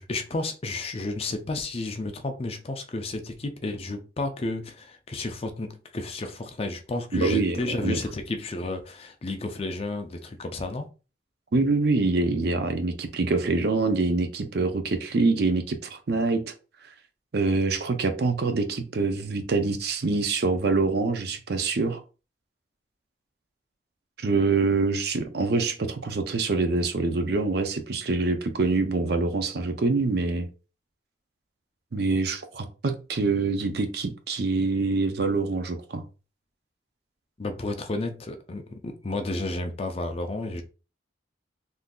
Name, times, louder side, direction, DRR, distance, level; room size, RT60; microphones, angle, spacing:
voice 1, 0.0-10.9 37.4-40.6, left 2 dB, 30° left, 0.4 m, -32 dB
voice 2, 7.1-8.0 11.5-16.5 17.3-22.0 24.2-30.5 31.9-36.0, right 3 dB, 55° right, 0.5 m, -25 dB
3.6 x 2.6 x 2.3 m
head